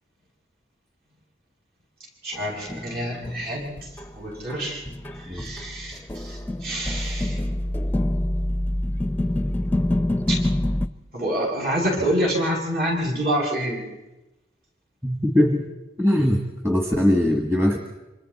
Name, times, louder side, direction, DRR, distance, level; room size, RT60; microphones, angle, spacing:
voice 1, 2.2-3.7 4.2-4.8 5.1-7.4 10.3-10.4 11.1-13.8, equal, 55° right, -3 dB, 7.6 m, -27 dB
sound 1, 2.3-4.1 4.5-10.9, left 1 dB, 10° left, 0.7 m, -26 dB
voice 2, 15.0-15.7 16.0-17.8, left 1 dB, 15° right, 3 dB, 1.6 m, -21 dB
27.5 x 26.0 x 4.3 m, 1.0 s
head